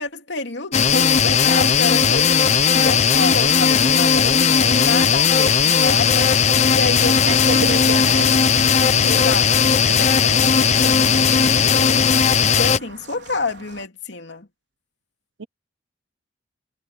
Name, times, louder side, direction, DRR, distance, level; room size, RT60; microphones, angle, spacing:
voice 1, 0.0-2.4 2.7-6.3 6.7-8.3 9.0-12.0 12.4-14.5, left 3 dB, 70° left, 2.8 m, -29 dB
sound 1, 0.7-12.8, left 6 dB, 40° left, 0.7 m, -16 dB
sound 2, 2.3-13.9, right 3 dB, 70° right, 4.5 m, -43 dB
voice 2, 7.3-8.3 8.8-9.2 15.4-15.5, right 5 dB, 85° right, 0.7 m, -28 dB
head